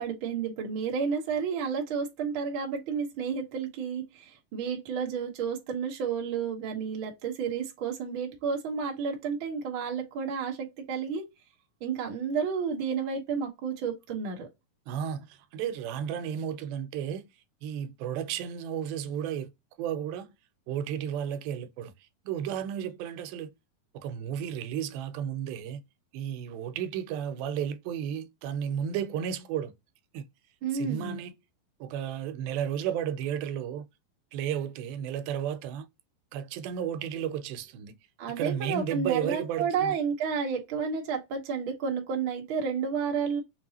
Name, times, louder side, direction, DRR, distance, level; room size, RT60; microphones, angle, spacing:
voice 1, 0.0-11.2 11.8-14.5 30.6-31.2 38.2-43.4, right 6 dB, 65° right, 1.2 m, -31 dB
voice 2, 14.9-17.3 17.6-19.5 19.8-20.3 20.7-21.9 22.3-23.5 23.9-25.8 26.1-29.7 30.1-30.2 30.7-31.3 31.8-33.9 34.3-35.9 36.3-37.9 38.4-40.0, right 9 dB, 85° right, 2.5 m, -33 dB
6.1 x 2.6 x 2.8 m
omnidirectional pair, 4.2 m